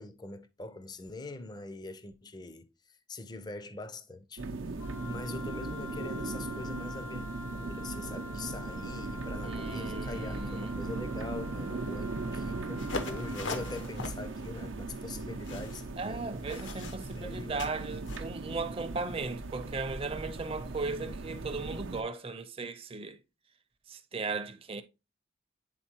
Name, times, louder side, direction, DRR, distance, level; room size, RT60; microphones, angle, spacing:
voice 1, 0.0-16.4 16.7-16.8 17.1-17.6, left 2 dB, 20° left, 0.5 m, -43 dB
sound 1, 4.4-22.0, right 3 dB, 85° right, 0.6 m, -38 dB
Wind instrument woodwind instrument, 4.8-13.9, left 3 dB, 85° left, 1.1 m, -46 dB
voice 2, 9.4-10.7 16.0-23.2 23.9-24.8, right 3 dB, 30° right, 0.6 m, -37 dB
sound 2, 12.8-18.3, left 3 dB, 70° left, 0.9 m, -42 dB
9.0 x 3.8 x 2.8 m
head